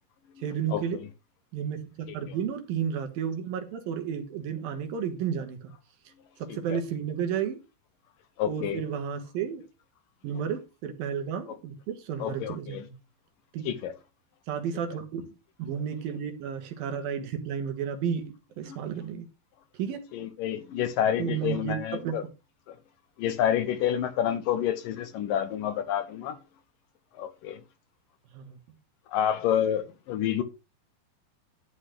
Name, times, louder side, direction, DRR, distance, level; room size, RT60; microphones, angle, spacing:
voice 1, 0.4-1.0 1.5-5.7 6.0-7.6 8.4-9.6 10.2-12.9 13.5-13.7 14.5-15.3 15.6-19.3 19.7-20.1 21.2-22.1 28.3-28.6, right 8 dB, 70° right, 3.0 m, -32 dB
voice 2, 8.4-8.8 12.2-12.8 13.7-13.9 18.7-18.8 20.1-22.2 22.7-22.8 23.2-26.4 27.1-27.6 29.1-30.4, left 10 dB, 70° left, 2.4 m, -28 dB
12.0 x 4.0 x 6.5 m
omnidirectional pair, 4.4 m